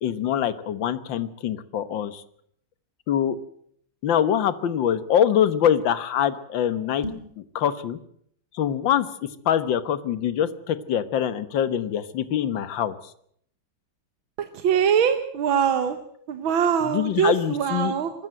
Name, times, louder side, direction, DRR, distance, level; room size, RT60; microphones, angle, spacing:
voice 1, 0.0-2.2 3.1-3.4 4.0-7.1 7.4-8.0 8.5-9.1 9.5-13.0 16.8-17.9, left 9 dB, 70° left, 14 dB, 1.8 m, -24 dB
sound 1, 6.9-7.4, left 1 dB, 30° left, 3.4 m, -35 dB
voice 2, 14.4-16.0 16.3-18.1, right 8 dB, 85° right, 9 dB, 1.9 m, -23 dB
24.5 x 13.5 x 7.8 m, 0.67 s
omnidirectional pair, 2.1 m